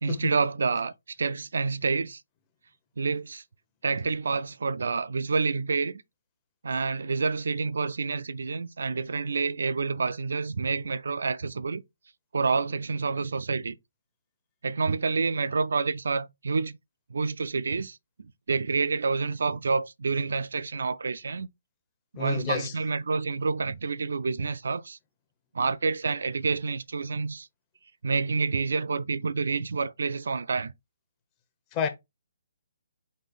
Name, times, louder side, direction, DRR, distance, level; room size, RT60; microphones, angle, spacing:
voice 1, 0.0-2.2 3.0-3.4 3.8-6.0 6.6-11.8 12.3-13.8 14.6-16.8 17.1-18.0 18.5-21.5 22.1-25.0 25.5-27.5 28.0-30.7, right 4 dB, 75° right, 0.3 m, -28 dB
voice 2, 22.2-22.7 31.7-31.9, left 7 dB, 25° left, 0.8 m, -30 dB
4.2 x 2.5 x 3.9 m
hypercardioid pair, 145°, 0 cm